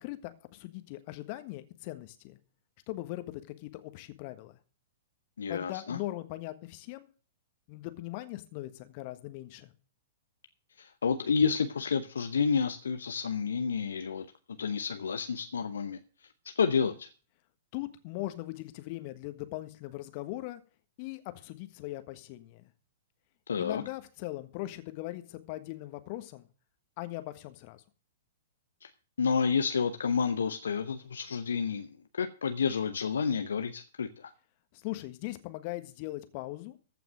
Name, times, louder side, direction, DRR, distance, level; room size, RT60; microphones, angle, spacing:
voice 1, 0.0-2.4 2.9-4.6 5.5-7.1 7.7-9.7 17.7-20.6 21.0-22.7 23.6-26.5 27.0-27.8 34.7-36.8, left 17 dB, 40° left, 10 dB, 1.4 m, -40 dB
voice 2, 5.4-6.0 10.8-14.3 14.6-16.0 16.4-17.1 23.5-23.8 28.8-28.9 29.2-34.3, left 6 dB, 70° left, 8 dB, 0.8 m, -30 dB
14.5 x 5.9 x 6.1 m, 0.38 s
figure-of-eight pair, 110°, 0 cm